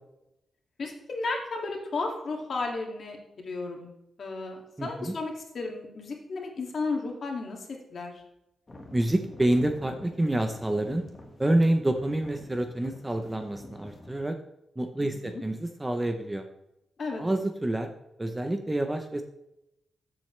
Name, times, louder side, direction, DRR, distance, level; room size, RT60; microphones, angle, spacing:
voice 1, 0.8-3.9 4.2-7.6 7.9-8.1 15.0-15.4 17.0-17.2, left 3 dB, 45° left, 1 dB, 2.2 m, -34 dB
voice 2, 4.8-5.2 8.9-11.0 11.4-14.4 14.8-16.5 17.2-17.9 18.2-19.2, right 1 dB, 10° right, 6 dB, 0.7 m, -27 dB
sound 1, 8.7-14.1, left 1 dB, 20° left, 1.6 m, -48 dB
14.0 x 7.5 x 3.2 m, 0.85 s
wide cardioid pair, 175°, 0 cm